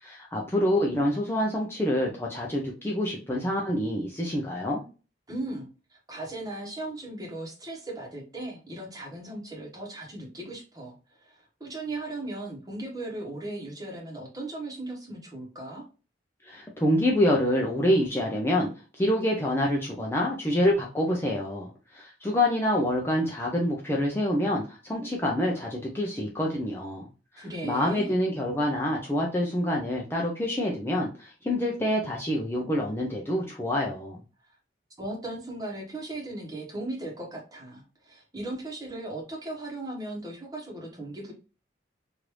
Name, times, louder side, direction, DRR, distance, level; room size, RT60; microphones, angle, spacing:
voice 1, 0.0-4.8 16.4-18.7 19.0-27.1 27.3-34.2, left 1 dB, 15° left, -2 dB, 0.5 m, -27 dB
voice 2, 5.3-15.8 27.4-28.1 34.5-34.6 35.0-41.3, right 2 dB, 20° right, -1 dB, 1.1 m, -37 dB
3.1 x 2.6 x 3.0 m, 0.34 s
head